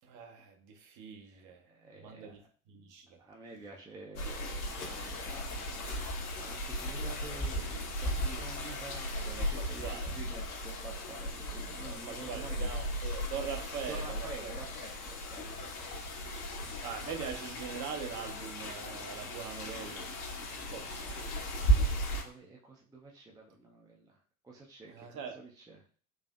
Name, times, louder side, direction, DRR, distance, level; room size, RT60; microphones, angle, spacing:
voice 1, 0.0-1.7 1.9-2.4 2.7-3.2 9.2-10.1 12.1-14.5 15.4-15.7 16.8-20.1 20.5-21.1 24.9-25.4, right 7 dB, 45° right, 5 dB, 0.8 m, -42 dB
voice 2, 1.4-2.5 3.2-5.8 6.4-12.8 13.9-15.4 20.6-24.2 24.4-25.8, right 3 dB, 10° right, -1 dB, 0.5 m, -49 dB
sound 1, 4.2-22.2, equal, 70° left, 1.0 m, -36 dB
4.1 x 2.5 x 2.4 m, 0.43 s
figure-of-eight pair, 70°, 45 cm